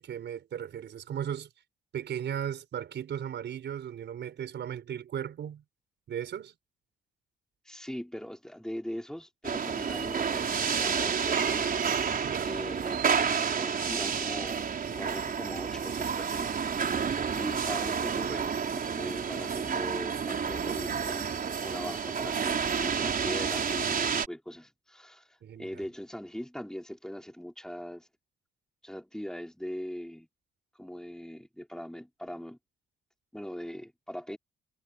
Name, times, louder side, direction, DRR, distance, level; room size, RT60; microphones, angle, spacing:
voice 1, 0.0-1.5 1.9-5.6 6.1-6.5 12.2-12.5 25.4-25.7, right 9 dB, 65° right, 4.8 m, -36 dB
voice 2, 7.7-11.9 12.4-13.0 13.4-17.0 17.3-21.3 21.6-25.3 25.6-28.1 28.8-30.3 30.8-32.6 33.3-34.4, equal, 5° left, 4.4 m, -40 dB
sound 1, 9.4-24.3, right 6 dB, 45° right, 4.8 m, -30 dB
cardioid pair, 90°, 20 cm